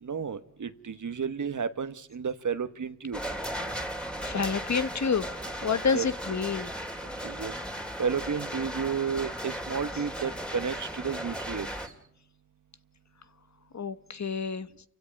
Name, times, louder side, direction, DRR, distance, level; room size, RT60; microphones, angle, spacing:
voice 1, 0.0-3.2 5.9-6.1 7.2-7.5 8.0-11.7, right 6 dB, 70° right, 1.4 m, -32 dB
sound 1, 3.1-11.9, equal, 5° left, 3.0 m, -36 dB
voice 2, 3.9-5.3 5.6-6.7 13.7-14.7, left 5 dB, 60° left, 1.4 m, -29 dB
29.5 x 16.5 x 5.4 m
cardioid pair, 65°, 31 cm